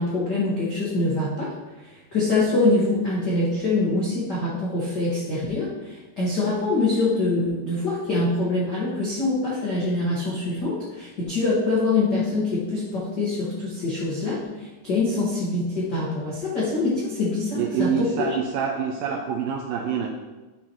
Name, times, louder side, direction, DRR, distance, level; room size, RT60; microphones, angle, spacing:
voice 1, 0.0-18.0, left 2 dB, 65° left, -8 dB, 1.0 m, -24 dB
voice 2, 17.6-20.1, right 7 dB, 85° right, 2 dB, 2.0 m, -26 dB
10.5 x 5.7 x 3.0 m, 1.2 s
omnidirectional pair, 4.6 m